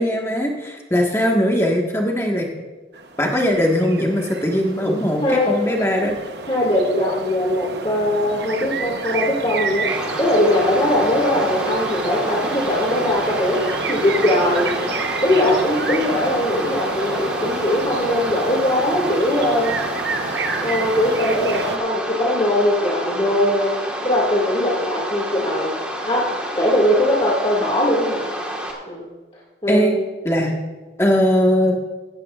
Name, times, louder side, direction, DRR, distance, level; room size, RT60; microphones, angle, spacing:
voice 1, 0.0-2.5 3.2-6.2 29.7-30.0 30.2-30.6 31.0-31.7, equal, 15° left, 0 dB, 1.5 m, -19 dB
sound 1, 2.9-21.8, right 4 dB, 75° right, 0.9 m, -29 dB
voice 2, 6.5-9.9 10.2-13.6 13.9-14.7 15.2-19.8 20.6-23.7 24.0-25.7 26.1-26.3 26.6-28.2 28.9-29.1 29.6-30.0, left 1 dB, 30° left, -4 dB, 2.1 m, -20 dB
sound 2, 9.9-28.7, right 1 dB, 5° right, 1.5 m, -29 dB
15.5 x 14.5 x 2.5 m, 1.3 s
head